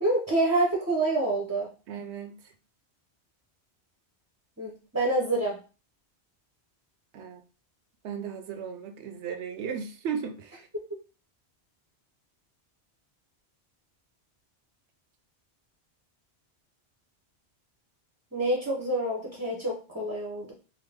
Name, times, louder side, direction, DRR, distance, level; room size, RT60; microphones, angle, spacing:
voice 1, 0.0-1.7 4.6-5.6 18.3-20.5, right 2 dB, 20° right, 0.6 m, -27 dB
voice 2, 1.9-2.4 7.1-7.4 8.0-10.7, right 7 dB, 85° right, 0.9 m, -35 dB
3.8 x 2.0 x 3.4 m
omnidirectional pair, 1.1 m